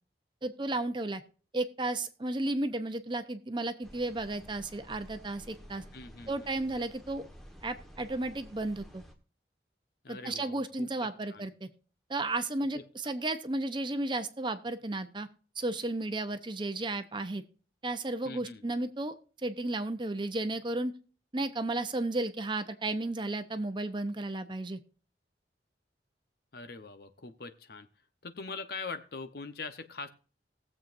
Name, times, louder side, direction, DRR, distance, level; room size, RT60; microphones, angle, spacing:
voice 1, 0.4-1.2 1.5-5.8 6.3-7.2 7.6-9.0 10.1-11.7 12.1-15.3 15.6-17.4 17.8-19.1 19.4-20.9 21.3-24.8, right 2 dB, 25° right, 9 dB, 0.8 m, -33 dB
sound 1, 3.8-9.1, equal, ahead, 1.3 m, -52 dB
voice 2, 5.9-6.5 10.0-11.5 12.7-13.1 18.2-18.6 26.5-27.9 28.2-30.1, left 4 dB, 60° left, 9 dB, 0.9 m, -43 dB
19.5 x 7.6 x 2.6 m, 0.38 s
head